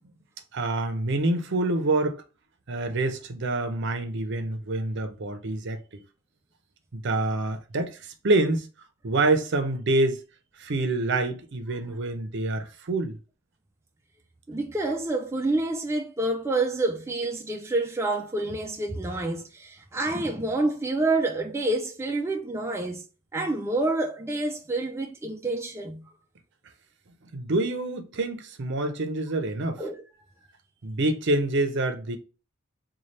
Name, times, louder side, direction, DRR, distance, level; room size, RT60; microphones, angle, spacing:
voice 1, 0.5-2.2 2.7-5.8 6.9-8.7 9.0-10.2 10.6-13.2 27.3-29.8 30.8-32.2, right 2 dB, 60° right, 0.6 m, -26 dB
voice 2, 14.5-23.1 23.3-26.0 29.8-30.0, right 2 dB, 15° right, 0.3 m, -28 dB
4.1 x 2.3 x 3.2 m
head